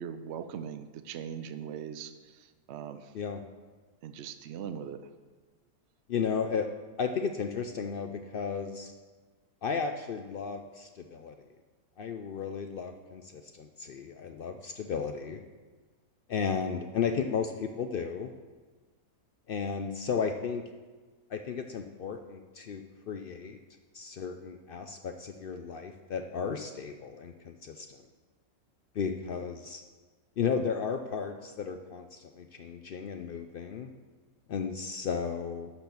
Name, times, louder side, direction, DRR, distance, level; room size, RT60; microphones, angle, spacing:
voice 1, 0.0-2.1 2.7-3.0 4.0-5.0, right 8 dB, 65° right, 9 dB, 0.7 m, -39 dB
voice 2, 6.1-6.7 7.0-8.9 9.6-11.4 12.0-15.4 16.3-18.3 19.5-20.7 21.3-23.6 23.9-28.0 28.9-29.8 30.4-33.9 34.5-35.7, left 6 dB, 75° left, 6 dB, 0.5 m, -34 dB
12.0 x 4.3 x 6.9 m, 1.4 s
omnidirectional pair, 1.6 m